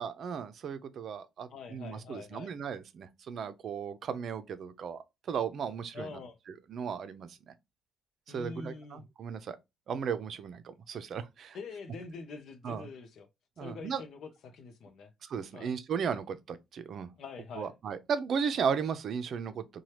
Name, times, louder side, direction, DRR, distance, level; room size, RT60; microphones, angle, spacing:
voice 1, 0.0-6.2 6.7-7.5 8.3-9.6 9.9-11.6 12.6-12.9 13.6-14.0 15.2-17.1 17.6-19.6, right 6 dB, 60° right, 0.5 m, -35 dB
voice 2, 1.5-2.5 5.9-6.4 8.3-9.0 11.5-13.3 13.6-15.1 15.5-15.7 17.1-17.7, left 4 dB, 70° left, 0.5 m, -45 dB
2.8 x 2.2 x 3.1 m
cardioid pair, 90°, 0 cm